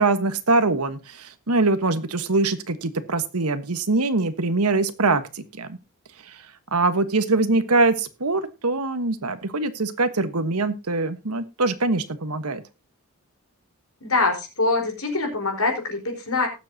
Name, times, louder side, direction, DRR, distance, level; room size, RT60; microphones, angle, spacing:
voice 1, 0.0-5.8 6.3-6.4 6.7-12.6, right 3 dB, 85° right, 10 dB, 1.3 m, -23 dB
voice 2, 14.0-16.5, left 3 dB, 70° left, 2 dB, 4.4 m, -24 dB
19.0 x 7.6 x 2.8 m, 0.28 s
head